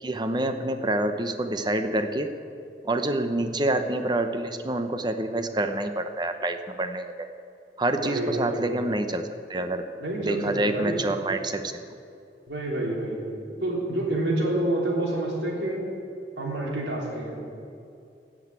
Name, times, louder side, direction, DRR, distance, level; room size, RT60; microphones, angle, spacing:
voice 1, 0.0-2.3 2.8-7.3 7.8-9.2 9.5-9.8 10.2-11.7, right 1 dB, 25° right, 8 dB, 0.7 m, -27 dB
voice 2, 8.0-8.9 10.0-11.0 12.5-15.8 16.4-17.3, right 1 dB, 85° right, -3 dB, 3.3 m, -28 dB
16.5 x 6.1 x 8.1 m, 2.6 s
head